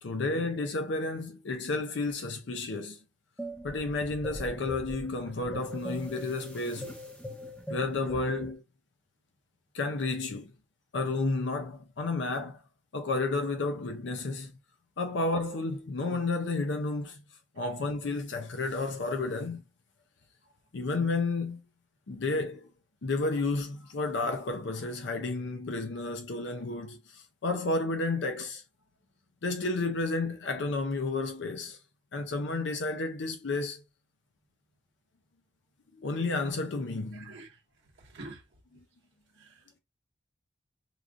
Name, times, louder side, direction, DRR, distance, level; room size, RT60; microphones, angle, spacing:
voice 1, 0.0-3.0 3.6-7.0 7.7-8.6 9.7-10.5 10.9-12.6 12.9-14.5 15.0-17.2 17.6-19.6 20.7-21.6 22.1-22.7 23.0-28.6 29.4-31.8 32.1-33.8 35.9-37.3 38.7-38.8, left 3 dB, 65° left, 0.5 m, -31 dB
sound 1, 3.4-8.5, equal, 5° left, 0.6 m, -41 dB
voice 2, 37.1-37.6 38.0-38.4 39.4-39.8, right 2 dB, 60° right, 0.7 m, -47 dB
4.7 x 2.4 x 2.4 m
head